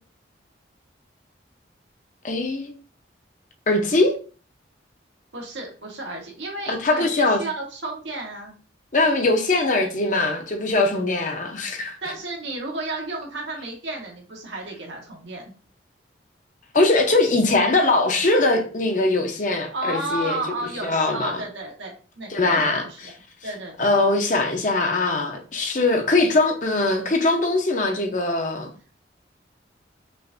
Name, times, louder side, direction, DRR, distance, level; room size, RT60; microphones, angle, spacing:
voice 1, 2.2-2.7 3.7-4.1 6.7-7.4 8.9-12.0 16.7-20.4 20.8-21.4 22.3-22.8 23.8-28.7, left 2 dB, 45° left, 0.7 m, -21 dB
voice 2, 5.3-8.5 12.0-15.5 19.7-23.1 23.4-23.7, right 2 dB, 80° right, 1.3 m, -32 dB
5.5 x 2.6 x 2.5 m
head